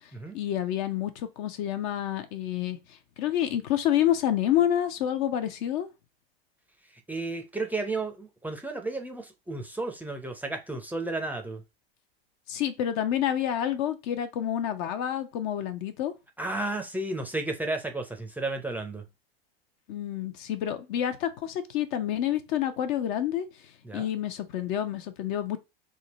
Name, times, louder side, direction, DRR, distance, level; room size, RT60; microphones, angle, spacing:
voice 1, 0.3-2.8 3.2-5.9 12.5-16.1 19.9-23.5 23.9-25.6, left 11 dB, 50° left, 0.8 m, -28 dB
voice 2, 7.1-11.6 16.4-19.0 23.8-24.1, right 2 dB, 5° right, 0.6 m, -33 dB
3.6 x 2.2 x 4.1 m
hypercardioid pair, 100°, 31 cm